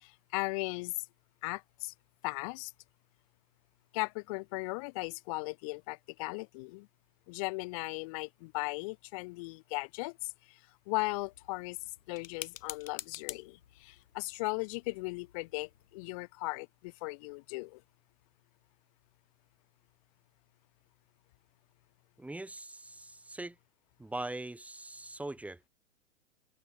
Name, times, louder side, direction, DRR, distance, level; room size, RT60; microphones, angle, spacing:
voice 1, 0.0-0.9 1.4-1.9 2.2-2.7 3.9-6.9 7.3-10.3 10.9-11.8 12.1-17.8, left 27 dB, 30° left, 0.5 m, -37 dB
sound 1, 11.0-16.2, left 9 dB, 75° left, 2.8 m, -49 dB
voice 2, 22.2-23.5 24.0-25.7, right 2 dB, 5° right, 1.7 m, -41 dB
hypercardioid pair, 125°, 39 cm